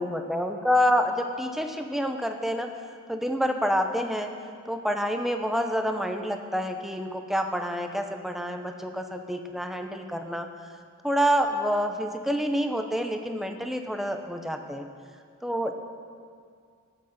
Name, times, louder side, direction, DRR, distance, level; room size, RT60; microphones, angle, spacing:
voice 1, 0.0-2.7 3.1-4.3 4.7-10.5 11.0-14.8 15.4-15.7, equal, ahead, 5 dB, 0.7 m, -27 dB
13.5 x 8.3 x 6.5 m, 2.1 s
head